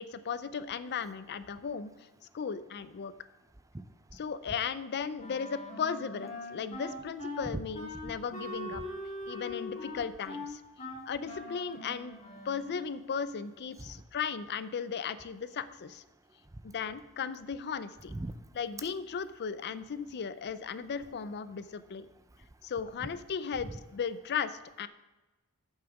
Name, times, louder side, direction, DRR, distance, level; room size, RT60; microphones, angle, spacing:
voice 1, 0.0-1.9 2.3-3.1 4.1-8.8 9.3-10.6 11.1-12.2 12.4-16.0 16.6-18.1 18.6-22.1 22.6-24.9, left 6 dB, 50° left, 0.4 m, -36 dB
voice 2, 3.7-4.2 7.5-7.6 8.7-8.9 13.8-14.0 16.4-16.6 18.1-18.5 22.3-22.6 23.6-23.8, right 1 dB, 15° right, 0.4 m, -42 dB
Wind instrument woodwind instrument, 5.2-12.8, left 2 dB, 30° left, 2.5 m, -42 dB
8.7 x 6.5 x 5.9 m
head